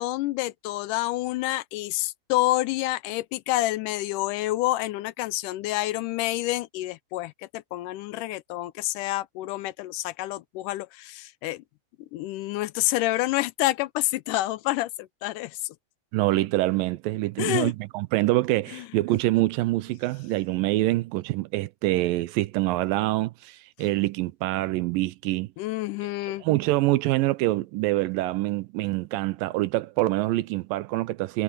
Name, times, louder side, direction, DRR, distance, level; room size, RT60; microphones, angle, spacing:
voice 1, 0.0-11.6 12.0-15.7 17.4-17.7 18.7-18.9 25.6-26.4, left 17 dB, 80° left, 2.0 m, -28 dB
voice 2, 16.1-25.5 26.4-31.4, right 17 dB, 90° right, 2.4 m, -25 dB
omnidirectional pair, 4.0 m